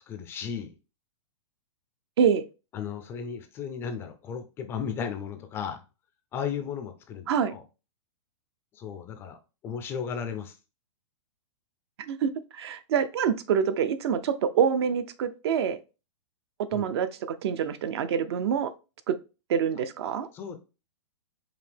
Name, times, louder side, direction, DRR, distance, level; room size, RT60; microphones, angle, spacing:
voice 1, 0.1-0.7 2.7-5.8 6.3-7.6 8.7-9.4 9.6-10.6 16.7-16.9 20.3-20.6, left 7 dB, 15° left, 0.3 m, -35 dB
voice 2, 12.1-15.8 16.7-18.7 19.1-19.2 19.5-20.3, right 7 dB, 55° right, 0.5 m, -26 dB
5.0 x 2.8 x 3.3 m
hypercardioid pair, 155°, 16 cm